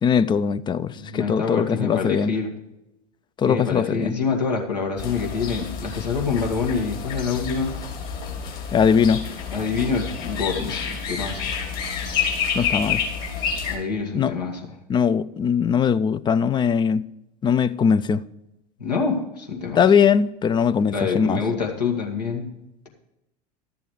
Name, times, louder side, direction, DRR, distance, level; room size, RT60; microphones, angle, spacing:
voice 1, 0.0-2.3 3.4-4.2 8.7-9.2 12.5-13.0 14.1-14.3 14.9-17.0 17.4-18.2 19.8-21.4, left 7 dB, 20° left, 0.4 m, -20 dB
voice 2, 0.9-2.5 3.4-7.7 9.5-11.5 13.7-14.6 18.8-19.8 20.9-22.5, left 5 dB, 80° left, 2.0 m, -26 dB
sound 1, 5.0-13.8, left 6 dB, 45° left, 2.9 m, -29 dB
12.5 x 7.1 x 4.8 m
figure-of-eight pair, 75°, 21 cm